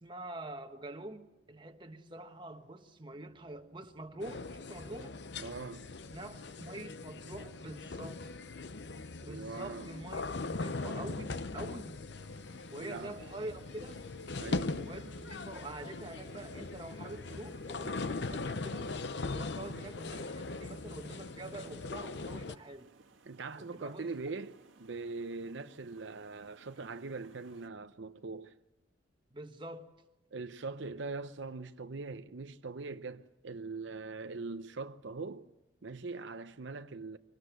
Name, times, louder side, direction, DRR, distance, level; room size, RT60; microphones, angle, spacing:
voice 1, 0.0-5.2 6.1-8.3 9.2-12.0 12.7-14.0 14.7-18.9 19.3-22.9 23.6-24.0 29.3-29.9, right 2 dB, 25° right, 1.3 m, -46 dB
sound 1, 1.0-7.0, right 1 dB, 85° left, 4.0 m, -71 dB
sound 2, 4.2-22.6, left 3 dB, 60° left, 0.7 m, -40 dB
voice 2, 5.4-5.9 9.2-9.9 12.8-13.2 14.4-14.9 23.3-28.5 30.3-35.5 35.8-37.2, right 3 dB, 70° right, 0.7 m, -42 dB
sound 3, 12.1-27.7, right 3 dB, 90° right, 1.8 m, -62 dB
24.0 x 19.0 x 8.2 m
head